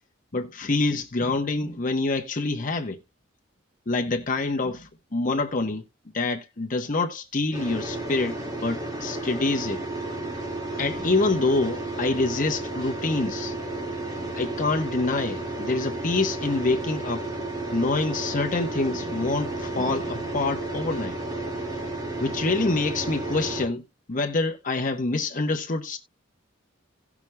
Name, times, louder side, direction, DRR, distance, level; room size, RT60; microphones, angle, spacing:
voice 1, 0.3-3.0 3.9-5.8 6.1-9.8 10.8-13.5 14.2-17.3 17.7-21.2 22.2-23.8 24.1-26.0, left 3 dB, 40° left, 0.9 m, -26 dB
sound 1, 7.5-23.7, right 2 dB, 20° right, 1.9 m, -32 dB
17.5 x 6.0 x 2.2 m
head